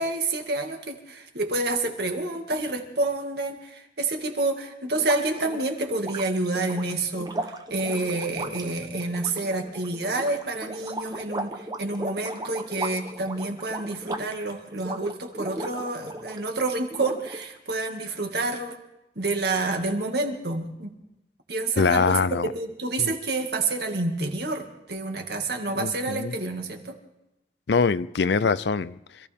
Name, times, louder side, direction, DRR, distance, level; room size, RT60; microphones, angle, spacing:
voice 1, 0.0-18.8 19.2-21.0 21.5-22.2 22.5-27.0, right 2 dB, 60° right, 2.2 m, -28 dB
sound 1, 4.9-16.5 16.9-17.7, right 1 dB, 20° right, 1.0 m, -37 dB
voice 2, 21.8-22.5 23.0-23.1 25.8-26.3 27.7-29.3, left 4 dB, 65° left, 0.5 m, -24 dB
26.0 x 15.0 x 3.6 m
head